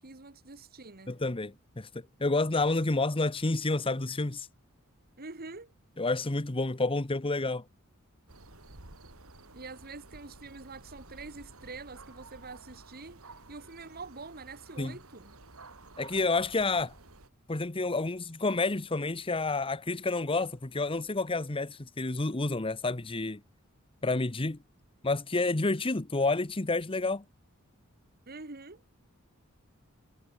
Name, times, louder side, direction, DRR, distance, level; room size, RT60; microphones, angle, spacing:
voice 1, 0.0-1.1 5.2-5.7 9.5-13.2 13.5-15.4 28.3-28.8, right 3 dB, 45° right, 2.0 m, -45 dB
voice 2, 1.1-1.9 2.2-4.5 6.0-7.6 14.8-15.0 16.0-16.9 17.5-23.4 24.0-24.6 25.0-27.2, left 3 dB, 25° left, 1.0 m, -29 dB
sound 1, 8.3-17.3, right 2 dB, 80° right, 4.0 m, -52 dB
head